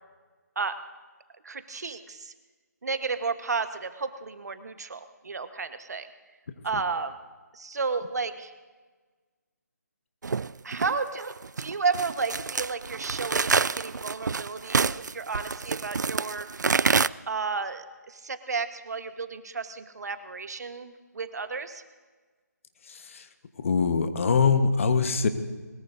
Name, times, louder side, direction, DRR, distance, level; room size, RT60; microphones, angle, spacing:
voice 1, 1.4-2.3 2.8-6.1 6.6-7.1 7.5-8.5 10.6-11.2 11.6-16.5 17.3-21.8, right 4 dB, 65° right, 10 dB, 1.3 m, -32 dB
sound 1, 10.2-17.1, right 5 dB, 85° right, 0.4 m, -27 dB
voice 2, 22.9-23.3 23.6-25.3, left 5 dB, 45° left, 8 dB, 1.3 m, -23 dB
21.5 x 21.0 x 2.7 m, 1.4 s
figure-of-eight pair, 155°, 9 cm